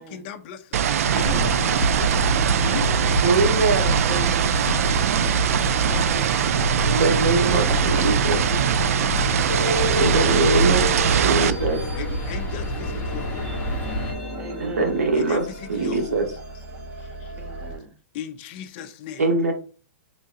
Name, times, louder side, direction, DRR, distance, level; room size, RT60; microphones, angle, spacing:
voice 1, 0.0-3.8 4.2-5.4 5.9-6.1 7.7-10.2 12.0-13.5 15.1-16.2 17.0-17.4 18.1-19.3, left 7 dB, 45° left, 0.6 m, -38 dB
sound 1, 0.7-11.5, right 9 dB, 70° right, 0.4 m, -22 dB
sound 2, 1.0-14.1, equal, 25° left, 1.7 m, -27 dB
voice 2, 1.2-1.9 2.7-3.3 4.0-4.8 5.8-6.5 11.3-12.0 14.4-15.0 17.4-18.0, right 3 dB, 20° right, 0.7 m, -38 dB
voice 3, 3.2-3.9 5.5-5.7 6.8-8.4 10.0-11.8 14.6-15.4 15.7-16.3 19.2-19.5, right 3 dB, 90° right, 1.0 m, -22 dB
sound 3, 9.5-17.8, equal, 50° right, 1.7 m, -32 dB
3.9 x 3.8 x 2.5 m
hypercardioid pair, 135°, 8 cm